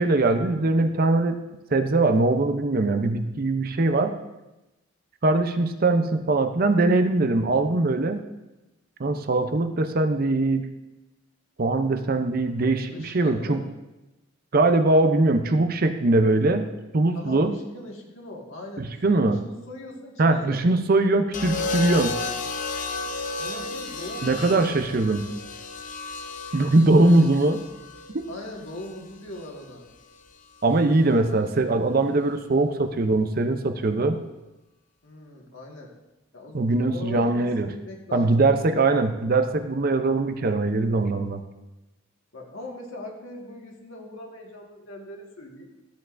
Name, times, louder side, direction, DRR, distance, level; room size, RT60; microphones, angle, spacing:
voice 1, 0.0-1.4 1.7-4.1 5.2-8.2 9.0-10.7 11.6-13.6 14.5-16.7 16.9-17.5 18.8-19.4 20.2-22.1 24.2-25.2 26.5-27.6 28.1-28.3 30.6-34.2 36.5-37.7 38.1-41.4, right 2 dB, 45° right, 8 dB, 0.5 m, -21 dB
voice 2, 12.9-13.6 17.1-19.0 19.3-20.6 23.4-24.9 26.9-27.3 28.3-29.9 31.3-31.4 35.0-35.9 36.3-39.0 42.3-45.7, left 1 dB, 70° left, 0 dB, 1.7 m, -40 dB
sound 1, 21.3-29.5 30.7-31.1, left 3 dB, 35° left, 0.5 m, -33 dB
13.5 x 8.0 x 2.5 m, 1.0 s
head